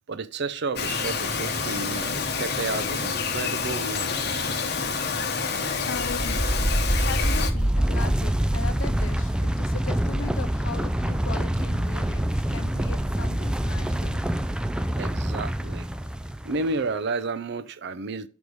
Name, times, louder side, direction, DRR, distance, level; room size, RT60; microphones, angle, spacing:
voice 1, 0.1-4.4 15.0-15.9 16.4-18.3, right 3 dB, 60° right, 0.5 m, -31 dB
Bird vocalization bird call bird song, 0.8-7.5, left 5 dB, 55° left, 0.9 m, -28 dB
voice 2, 5.8-6.6 7.0-14.2, left 5 dB, 75° left, 0.5 m, -38 dB
sound 1, 6.0-16.7, right 1 dB, 5° right, 0.3 m, -25 dB
5.3 x 4.7 x 6.3 m
head